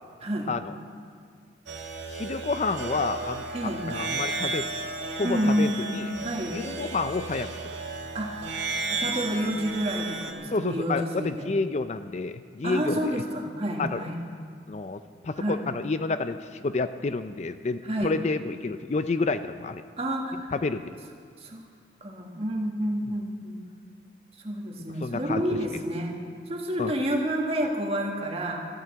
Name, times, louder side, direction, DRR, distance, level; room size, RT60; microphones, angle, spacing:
sound 1, 1.7-10.3, right 3 dB, 80° right, 1.8 m, -34 dB
voice 1, 2.1-3.4 3.9-4.7 5.2-6.1 6.5-7.5 10.5-13.2 13.8-14.0 14.7-16.4 16.6-19.8 20.5-21.0 25.0-25.4 26.8-26.9, left 3 dB, 35° left, 10 dB, 0.4 m, -29 dB
voice 2, 5.2-5.9 6.2-6.5 8.1-11.5 12.6-14.2 15.4-15.6 17.8-18.2 20.0-20.5 21.4-21.7 22.0-23.6 24.4-26.2 26.5-28.7, equal, 35° right, 1 dB, 1.7 m, -29 dB
13.5 x 12.5 x 7.8 m, 2.2 s
head